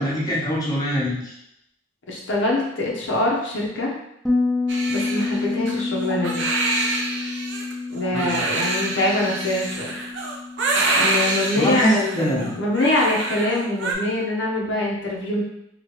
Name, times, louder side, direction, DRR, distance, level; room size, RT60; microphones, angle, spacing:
voice 1, 0.0-1.3 8.1-8.4 11.6-12.6, equal, 20° left, -7 dB, 0.9 m, -23 dB
voice 2, 2.1-3.9 4.9-6.5 7.9-10.0 11.0-15.4, left 1 dB, 85° left, -2 dB, 0.7 m, -24 dB
Bass guitar, 4.2-13.6, left 3 dB, 5° left, 0.5 m, -29 dB
Crying sobbing, 4.7-13.9, right 2 dB, 80° right, 0.6 m, -26 dB
3.1 x 2.9 x 2.9 m, 0.79 s
head